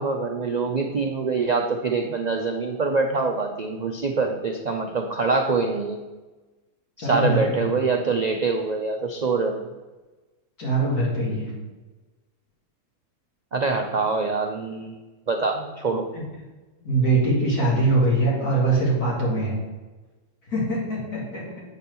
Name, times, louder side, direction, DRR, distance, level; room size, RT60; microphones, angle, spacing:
voice 1, 0.0-6.0 7.0-9.7 13.5-16.1, right 4 dB, 75° right, 3 dB, 0.4 m, -25 dB
voice 2, 7.0-7.7 10.6-11.5 16.1-16.2 16.8-19.6 20.5-21.6, right 2 dB, 70° left, -4 dB, 3.0 m, -23 dB
7.9 x 4.4 x 6.8 m, 1.2 s
omnidirectional pair, 1.7 m